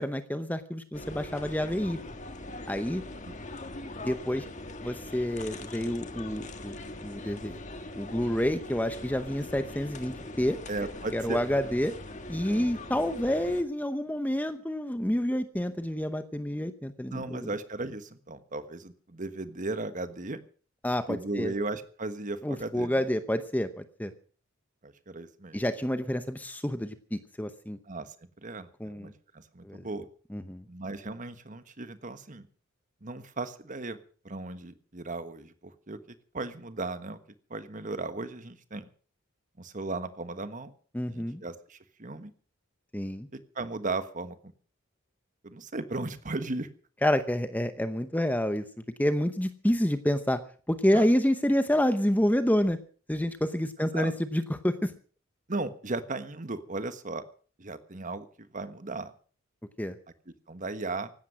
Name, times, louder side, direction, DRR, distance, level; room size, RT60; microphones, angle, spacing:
voice 1, 0.0-2.0 2.7-3.0 4.0-4.5 4.8-6.8 7.0-7.6 7.9-10.6 11.1-11.9 12.3-17.5 20.8-21.5 22.4-24.1 25.5-27.8 28.8-29.1 29.6-29.8 30.3-30.6 40.9-41.4 42.9-43.3 47.0-48.6 49.0-50.4 50.7-52.8 53.1-54.9 59.8-60.0, equal, 10° left, 11 dB, 0.8 m, -28 dB
sound 1, 0.9-13.6, left 2 dB, 35° left, 1.6 m, -41 dB
voice 2, 10.7-11.4 12.5-12.7 17.1-20.4 21.1-23.0 24.8-25.6 27.9-28.1 28.4-30.1 30.7-32.5 33.0-34.0 34.2-36.0 36.3-37.2 37.5-38.9 39.6-40.7 41.1-42.3 43.3-44.4 45.4-46.7 50.9-51.1 53.9-54.1 55.5-57.2 57.6-59.1 60.5-61.1, right 2 dB, 35° right, 11 dB, 1.3 m, -36 dB
16.0 x 12.0 x 6.3 m, 0.42 s
head